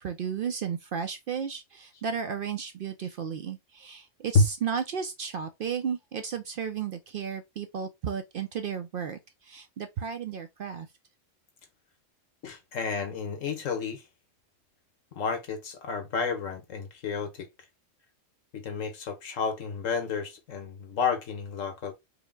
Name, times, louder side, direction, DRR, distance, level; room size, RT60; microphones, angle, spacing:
voice 1, 0.0-10.9, right 7 dB, 60° right, 0.6 m, -34 dB
voice 2, 12.4-14.0 15.2-17.5 18.5-21.9, left 4 dB, 85° left, 1.4 m, -30 dB
4.8 x 2.1 x 3.4 m
omnidirectional pair, 1.3 m